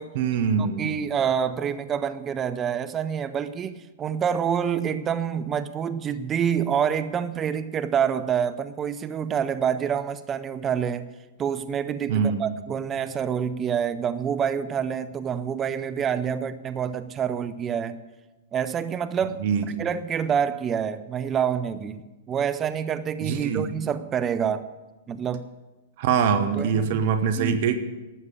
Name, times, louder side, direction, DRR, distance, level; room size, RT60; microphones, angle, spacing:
voice 1, 0.1-1.0 12.1-12.4 19.4-19.9 23.2-23.7 26.0-27.8, right 6 dB, 55° right, 10 dB, 1.1 m, -24 dB
voice 2, 0.8-11.1 11.4-18.0 18.5-19.5 19.8-24.7 25.1-25.5 26.6-27.0 27.4-27.6, right 8 dB, 25° right, 13 dB, 0.6 m, -27 dB
12.5 x 8.1 x 8.6 m, 1.1 s
hypercardioid pair, 110°, 0 cm